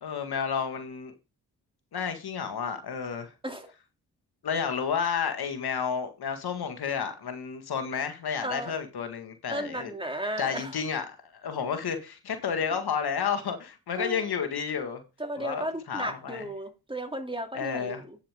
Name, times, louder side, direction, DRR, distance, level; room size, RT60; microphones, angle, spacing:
voice 1, 0.0-1.1 1.9-3.3 4.4-9.9 10.4-11.1 11.4-15.0 15.4-16.4 17.5-18.0, left 7 dB, 70° left, 1.9 m, -31 dB
voice 2, 8.4-8.8 9.5-10.8 14.0-14.4 15.2-18.2, right 1 dB, 15° right, 2.8 m, -34 dB
10.0 x 7.1 x 3.6 m
supercardioid pair, 45°, 40 cm